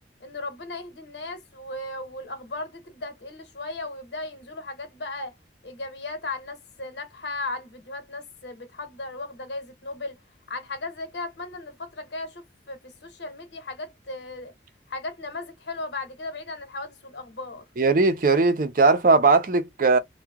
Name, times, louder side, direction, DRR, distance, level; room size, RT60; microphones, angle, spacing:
voice 1, 0.2-5.3 5.6-10.1 10.5-14.5 14.9-17.6, left 2 dB, 75° left, 1.1 m, -36 dB
voice 2, 17.8-20.0, right 3 dB, 50° right, 0.6 m, -19 dB
2.8 x 2.3 x 3.5 m
head